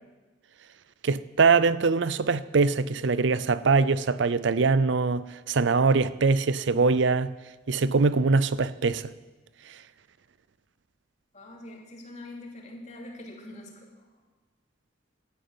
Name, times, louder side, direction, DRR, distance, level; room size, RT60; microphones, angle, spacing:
voice 1, 1.0-7.3 7.7-9.1, right 4 dB, 65° right, 0.5 m, -23 dB
voice 2, 11.3-14.1, left 1 dB, 40° left, 3.0 m, -44 dB
11.5 x 10.5 x 8.9 m
head